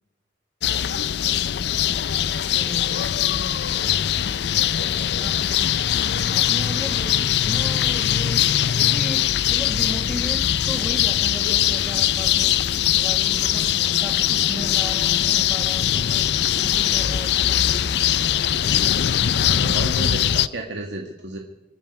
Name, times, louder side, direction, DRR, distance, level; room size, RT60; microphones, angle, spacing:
sound 1, 0.6-20.5, left 10 dB, 70° left, 0.5 m, -21 dB
voice 1, 2.5-4.2 4.5-5.4 6.3-17.9, equal, ahead, 1.7 m, -37 dB
voice 2, 19.6-21.4, right 1 dB, 85° right, 1.9 m, -32 dB
28.0 x 9.3 x 4.8 m
head